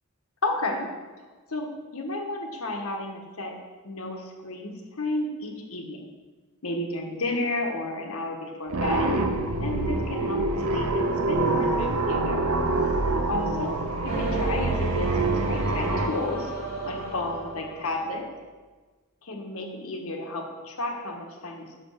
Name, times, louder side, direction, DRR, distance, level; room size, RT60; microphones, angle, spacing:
voice 1, 0.4-0.9 1.5-3.6 3.8-6.0 6.6-9.1 9.6-12.4 13.3-13.8 14.0-16.5 16.8-18.3 19.2-21.8, left 2 dB, 75° left, 2 dB, 1.2 m, -32 dB
sound 1, 8.7-16.1, right 2 dB, 80° right, 0.8 m, -26 dB
sound 2, 14.1-18.2, right 3 dB, 30° right, 1.6 m, -32 dB
6.0 x 5.1 x 6.2 m, 1.3 s
head